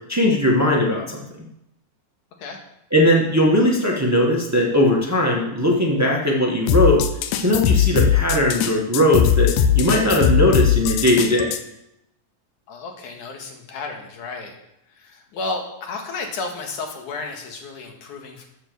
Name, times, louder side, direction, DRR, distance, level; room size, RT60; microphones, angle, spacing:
voice 1, 0.1-1.2 2.9-7.0 7.4-11.5, left 1 dB, 25° right, -1 dB, 0.3 m, -19 dB
sound 1, 6.7-11.6, left 8 dB, 90° left, 2.5 m, -19 dB
voice 2, 12.7-14.6 14.9-18.5, left 3 dB, 65° left, 2 dB, 3.2 m, -32 dB
13.5 x 7.3 x 7.1 m, 0.83 s
omnidirectional pair, 4.0 m